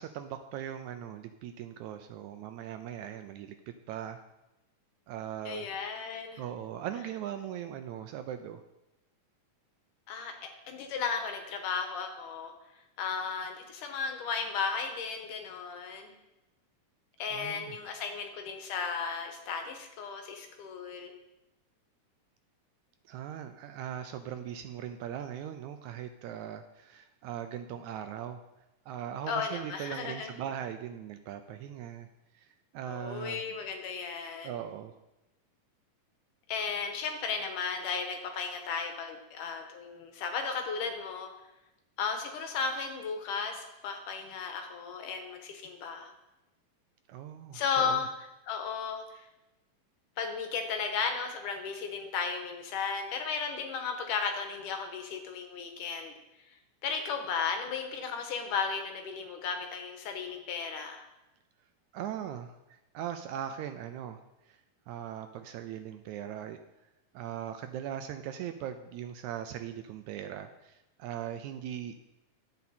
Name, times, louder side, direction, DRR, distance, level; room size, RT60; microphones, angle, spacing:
voice 1, 0.0-3.6 3.9-4.2 5.1-5.7 6.4-8.6 17.3-17.7 23.1-28.4 28.9-32.1 32.4-32.5 32.7-33.4 34.4-34.9 47.1-48.0 61.9-64.2 64.9-66.6 67.1-71.9, right 10 dB, 80° right, 8 dB, 1.8 m, -39 dB
voice 2, 5.4-6.4 10.1-12.5 13.0-16.1 17.2-21.1 29.3-30.4 32.9-34.6 36.5-41.3 42.0-46.1 47.5-49.3 50.2-56.1 56.8-61.0, left 5 dB, 80° left, 5 dB, 2.7 m, -35 dB
11.0 x 8.2 x 4.2 m, 0.96 s
omnidirectional pair, 3.7 m